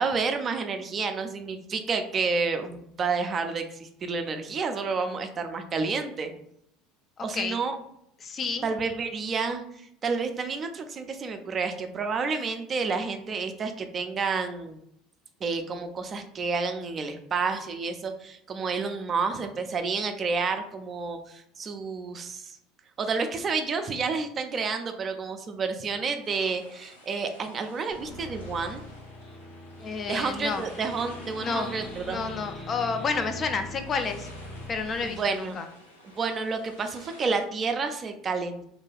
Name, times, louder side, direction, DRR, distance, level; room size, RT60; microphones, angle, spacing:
voice 1, 0.0-6.3 7.2-7.8 8.6-9.6 10.0-14.8 15.4-22.6 23.0-28.8 30.1-32.2 35.0-35.6 36.1-38.7, right 4 dB, 35° right, 6 dB, 0.4 m, -30 dB
voice 2, 7.2-7.6 8.2-8.7 29.8-30.7 31.4-31.7 32.1-34.3 34.7-35.7, left 4 dB, 35° left, 7 dB, 0.4 m, -30 dB
sound 1, 26.2-37.5, left 1 dB, 85° left, 0.6 m, -52 dB
sound 2, 27.9-35.1, left 1 dB, 70° left, 1.0 m, -42 dB
2.6 x 2.2 x 3.2 m, 0.74 s
hypercardioid pair, 70°, 0 cm